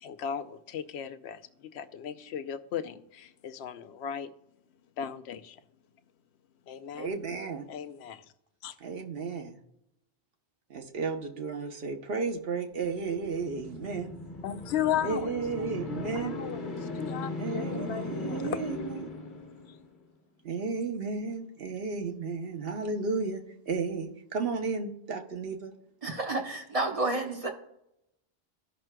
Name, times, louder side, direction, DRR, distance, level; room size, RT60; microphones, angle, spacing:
voice 1, 0.0-4.3 5.0-5.6 6.7-7.1 7.7-8.3 8.6-8.8 14.4-15.3 15.9-18.6 19.7-19.8, left 9 dB, 75° left, 10 dB, 0.8 m, -36 dB
voice 2, 6.9-7.7 8.8-9.6 10.7-14.2 15.0-16.4 17.4-19.2 20.4-25.7, right 4 dB, 60° right, 4 dB, 1.1 m, -33 dB
sound 1, 13.0-20.0, left 2 dB, 45° left, 1.3 m, -38 dB
voice 3, 26.0-27.5, right 2 dB, 35° right, 2 dB, 1.0 m, -30 dB
15.0 x 5.9 x 2.2 m, 0.81 s
omnidirectional pair, 1.2 m